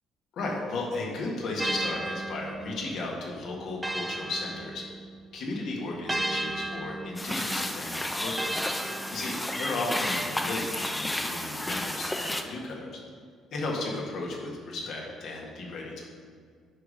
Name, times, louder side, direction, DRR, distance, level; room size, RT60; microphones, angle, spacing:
voice 1, 0.3-4.8 5.3-8.8 9.1-12.9 13.5-16.0, left 2 dB, 65° left, -2 dB, 1.8 m, -35 dB
sound 1, 1.6-5.3 6.1-9.8, right 1 dB, 10° right, 0.5 m, -35 dB
sound 2, 7.2-12.4, left 1 dB, 10° left, 0.8 m, -32 dB
9.3 x 4.9 x 5.2 m, 2.1 s
hypercardioid pair, 50°, 0 cm